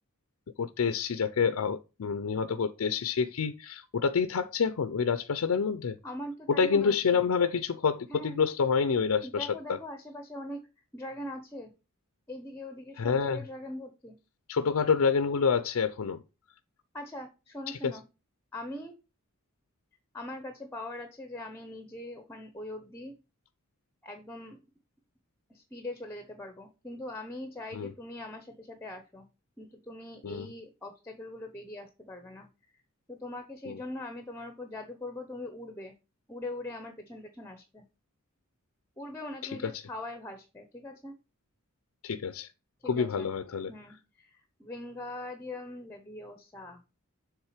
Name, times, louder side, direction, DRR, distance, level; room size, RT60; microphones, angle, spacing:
voice 1, 0.6-6.0 6.5-9.8 13.0-13.4 14.5-16.2 17.7-17.9 27.7-27.9 30.2-30.5 33.6-33.8 39.4-39.7 42.0-42.5 42.8-43.7, left 6 dB, 85° left, 0.5 m, -28 dB
voice 2, 6.0-7.3 8.1-8.4 9.2-10.6 10.9-11.7 12.3-14.2 16.9-18.0 18.5-19.0 20.1-23.1 24.0-24.6 25.5-29.3 29.6-32.5 33.1-35.9 36.3-37.8 39.0-41.1 42.8-43.3 43.7-46.8, left 1 dB, 10° left, 0.8 m, -42 dB
7.2 x 3.7 x 4.9 m
head